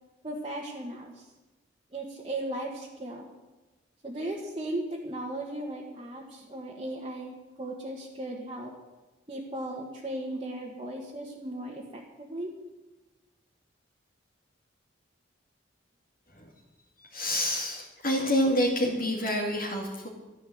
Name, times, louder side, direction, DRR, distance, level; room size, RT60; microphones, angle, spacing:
voice 1, 0.2-1.3 1.9-3.3 4.0-8.7 9.3-12.5, right 1 dB, 25° right, -3 dB, 1.7 m, -36 dB
voice 2, 17.1-20.1, left 1 dB, 45° left, -2 dB, 2.3 m, -27 dB
13.5 x 11.5 x 7.9 m, 1.1 s
head